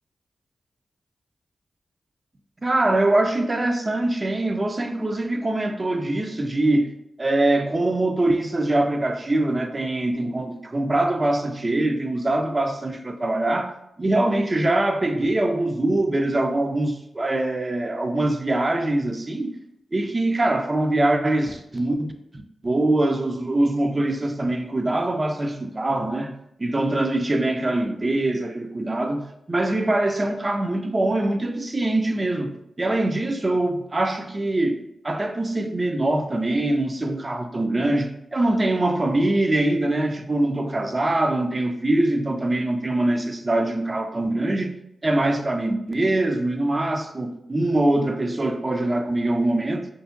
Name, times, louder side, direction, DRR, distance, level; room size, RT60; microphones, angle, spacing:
voice 1, 2.6-6.9 7.2-19.5 19.9-44.7 45.0-49.9, right 2 dB, 35° right, 0.3 m, -23 dB
2.7 x 2.5 x 2.5 m
cardioid pair, 50°, 0 cm